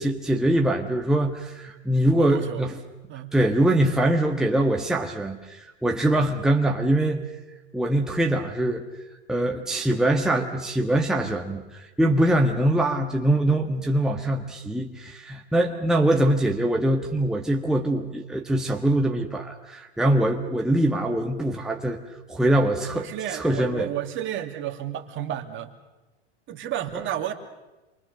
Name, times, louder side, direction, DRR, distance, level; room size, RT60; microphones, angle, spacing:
voice 1, 0.0-2.8 3.3-7.2 7.7-8.8 9.3-11.6 12.0-22.0 22.3-23.9, right 1 dB, ahead, 1 dB, 1.5 m, -23 dB
voice 2, 2.2-2.7 3.1-3.3 15.7-15.8 22.9-25.7 26.5-27.3, right 11 dB, 35° right, 6 dB, 2.5 m, -31 dB
28.0 x 23.0 x 6.7 m, 1.1 s
hypercardioid pair, 120°, 34 cm